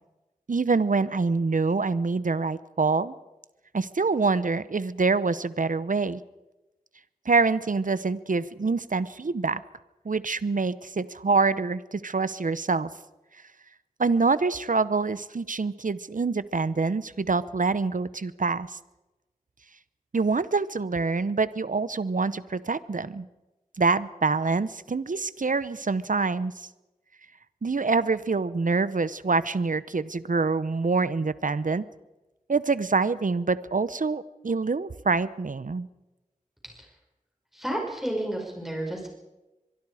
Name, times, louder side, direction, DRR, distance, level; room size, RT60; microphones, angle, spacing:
voice 1, 0.5-3.1 3.7-6.2 7.3-9.6 10.0-12.9 14.0-18.8 20.1-23.3 23.8-26.7 27.6-31.8 32.5-35.9, right 4 dB, 70° right, 16 dB, 0.8 m, -25 dB
voice 2, 37.5-39.1, right 1 dB, ahead, -1 dB, 5.6 m, -31 dB
24.0 x 22.5 x 4.9 m, 1.0 s
wide cardioid pair, 55°, 14 cm